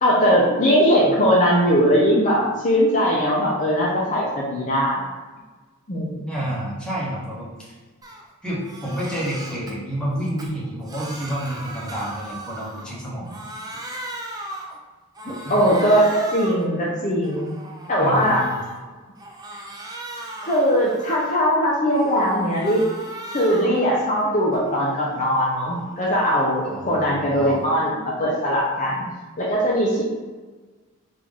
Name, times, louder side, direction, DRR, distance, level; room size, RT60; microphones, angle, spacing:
voice 1, 0.0-5.0 5.9-6.2 15.5-17.5 17.9-18.4 20.4-22.8 23.3-29.1 29.4-30.0, equal, 35° left, -4 dB, 0.5 m, -20 dB
voice 2, 6.3-7.7 8.4-13.4 15.2-15.6 18.0-18.6 26.6-27.6, equal, 5° left, -7 dB, 0.9 m, -29 dB
Crying sobbing, 8.0-8.2 8.6-9.7 10.2-13.0 13.2-14.8 15.2-16.7 17.1-18.8 19.2-21.5 21.9-23.8 24.2-26.6, right 1 dB, 20° right, 0.4 m, -37 dB
3.4 x 2.5 x 3.5 m, 1.3 s
head